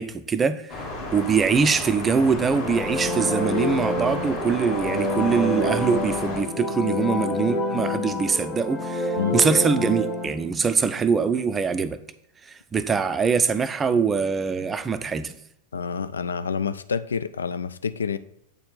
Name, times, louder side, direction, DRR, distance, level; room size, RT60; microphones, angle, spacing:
voice 1, 0.0-12.0 12.4-15.4, right 5 dB, 20° right, 0.4 m, -23 dB
sound 1, 0.7-6.4, left 2 dB, 50° left, 2.0 m, -33 dB
sound 2, 2.4-10.3, left 2 dB, 25° left, 1.4 m, -28 dB
voice 2, 15.7-18.2, left 6 dB, 70° left, 0.3 m, -28 dB
8.0 x 4.3 x 3.9 m
figure-of-eight pair, 90°, 0 cm